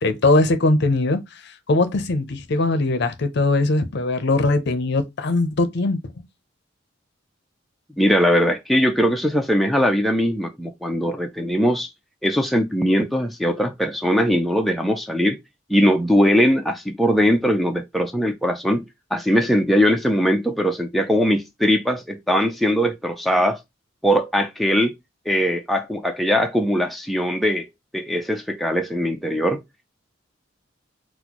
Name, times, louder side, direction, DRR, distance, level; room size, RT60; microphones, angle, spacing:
voice 1, 0.0-6.0, left 2 dB, 60° left, 0.6 m, -20 dB
voice 2, 8.0-11.9 12.2-15.4 15.7-18.9 19.1-23.6 24.0-24.9 25.3-27.7 27.9-29.6, equal, ahead, 0.4 m, -20 dB
4.2 x 2.0 x 2.9 m
head